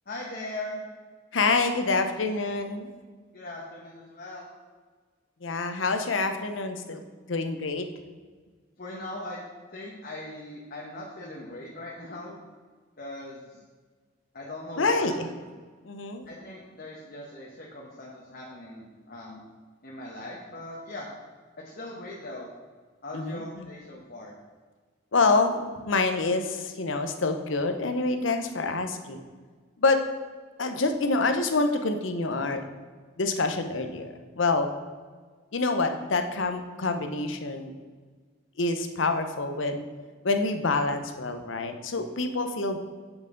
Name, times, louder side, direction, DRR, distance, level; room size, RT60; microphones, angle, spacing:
voice 1, 0.1-0.8 3.3-4.5 8.8-9.4 9.7-12.4 13.0-13.5 14.3-15.1 16.3-19.4 19.8-21.1 21.6-22.5 23.0-24.3, left 1 dB, 50° left, -3 dB, 1.2 m, -40 dB
voice 2, 1.3-2.9 5.4-7.0 7.3-7.8 14.8-15.3 15.9-16.3 23.1-23.7 25.1-29.2 29.8-30.0 30.6-32.6 33.2-34.7 35.5-37.7 38.6-39.8 40.2-42.8, left 3 dB, 80° left, 7 dB, 0.8 m, -27 dB
8.0 x 7.2 x 3.9 m, 1.5 s
head